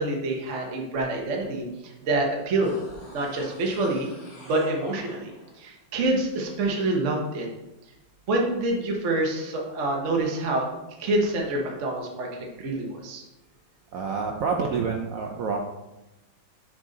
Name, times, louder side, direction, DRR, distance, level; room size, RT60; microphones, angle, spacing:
voice 1, 0.0-1.6 2.0-2.8 3.1-4.1 4.4-7.5 8.3-10.7 11.0-13.2, right 2 dB, 50° right, 0 dB, 1.0 m, -26 dB
sound 1, 2.6-5.6 5.9-6.0, left 1 dB, 40° left, 1.8 m, -46 dB
voice 2, 13.9-15.6, right 5 dB, 85° right, 2 dB, 0.7 m, -27 dB
6.3 x 5.6 x 3.8 m, 1.0 s
omnidirectional pair, 2.2 m